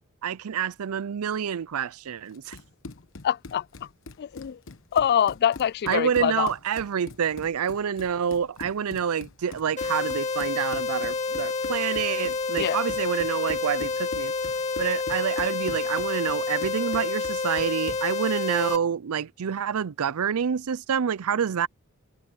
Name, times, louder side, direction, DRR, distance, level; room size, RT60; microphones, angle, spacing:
voice 1, 0.2-2.6 5.9-14.3 14.8-21.7, right 7 dB, 75° right, 0.5 m, -27 dB
Run, 2.3-18.1, left 3 dB, 65° left, 1.1 m, -43 dB
voice 2, 3.2-3.6 4.2-4.6 4.9-6.5 12.6-12.8, left 9 dB, 50° left, 0.3 m, -24 dB
sound 1, 9.8-18.8, left 4 dB, 30° left, 2.1 m, -29 dB
head